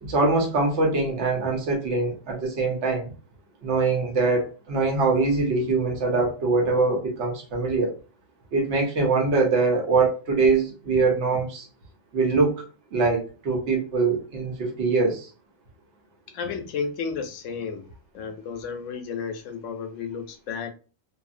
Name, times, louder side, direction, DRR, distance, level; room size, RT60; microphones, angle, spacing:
voice 1, 0.0-3.1 3.6-7.9 8.5-11.7 12.1-12.6 12.9-15.3, right 3 dB, 60° right, 1.2 m, -23 dB
voice 2, 16.3-17.9 18.1-20.7, left 5 dB, 70° left, 0.9 m, -32 dB
2.7 x 2.5 x 2.5 m
omnidirectional pair, 1.4 m